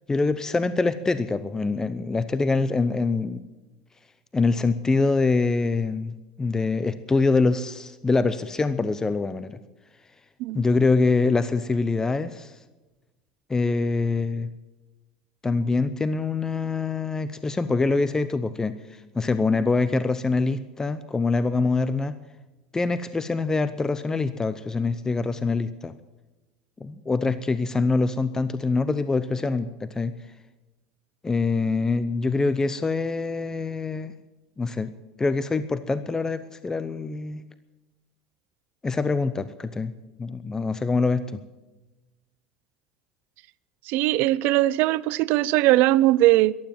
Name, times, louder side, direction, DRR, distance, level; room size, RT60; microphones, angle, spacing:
voice 1, 0.1-3.4 4.3-9.6 10.5-12.6 13.5-14.5 15.4-22.1 22.7-25.9 26.8-30.1 31.2-34.1 34.6-34.9 35.2-37.4 38.8-39.9 40.2-41.4, left 3 dB, 15° left, 0.7 m, -24 dB
voice 2, 43.9-46.5, right 16 dB, 60° right, 0.5 m, -20 dB
14.5 x 12.0 x 7.6 m
hypercardioid pair, 95°, 4 cm